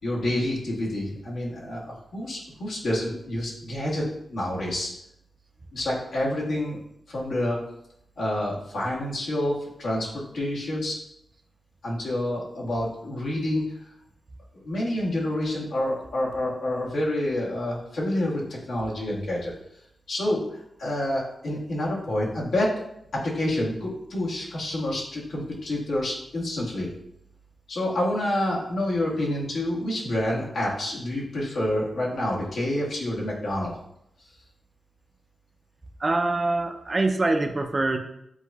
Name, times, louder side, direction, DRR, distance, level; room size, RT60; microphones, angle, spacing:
voice 1, 0.0-4.0 4.3-4.9 5.7-6.8 7.1-7.6 8.2-10.9 11.8-13.7 14.5-19.5 20.1-22.7 23.2-26.9 27.7-33.7, left 1 dB, 90° left, -5 dB, 1.5 m, -28 dB
voice 2, 36.0-38.0, right 2 dB, 25° right, 5 dB, 0.4 m, -24 dB
7.8 x 2.6 x 2.3 m, 0.77 s
wide cardioid pair, 175°, 0 cm